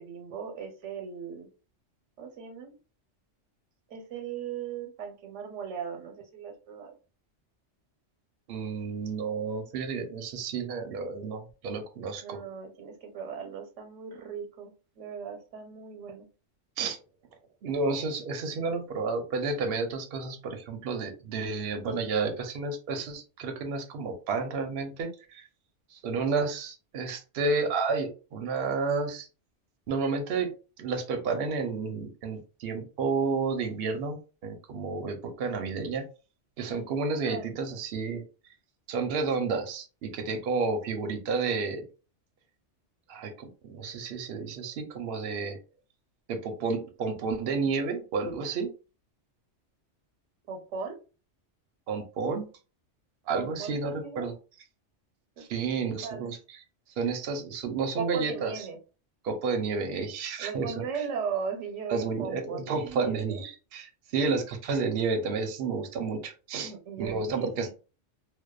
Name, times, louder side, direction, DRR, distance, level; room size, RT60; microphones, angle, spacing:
voice 1, 0.0-1.5 2.2-2.7 3.9-6.9 12.2-16.3 37.3-37.5 50.5-51.0 53.3-54.3 55.4-55.6 56.0-56.3 57.9-58.8 60.4-63.5 66.6-67.7, right 6 dB, 85° right, 4 dB, 1.0 m, -38 dB
voice 2, 8.5-12.4 16.8-17.0 17.6-25.4 25.9-29.3 29.9-30.5 30.8-36.0 36.6-38.2 38.9-41.8 43.1-45.6 46.3-48.7 51.9-52.5 53.3-54.3 55.5-56.6 57.0-58.5 59.2-60.8 61.9-66.7 67.0-67.7, right 4 dB, 60° right, 5 dB, 0.7 m, -31 dB
2.7 x 2.1 x 2.2 m, 0.33 s
omnidirectional pair, 1.2 m